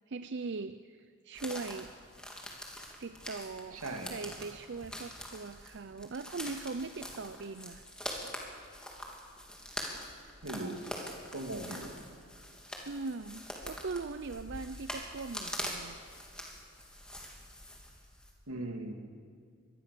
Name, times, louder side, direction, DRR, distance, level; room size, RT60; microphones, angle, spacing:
voice 1, 0.1-2.0 3.0-7.9 12.9-16.0, right 4 dB, 55° right, 10 dB, 0.6 m, -40 dB
sound 1, 1.3-18.3, left 1 dB, 5° left, 3.0 m, -44 dB
voice 2, 3.7-4.2 10.4-10.8 11.3-11.9 18.5-18.9, right 2 dB, 90° right, 4 dB, 2.9 m, -39 dB
25.0 x 20.5 x 6.9 m, 2.1 s
head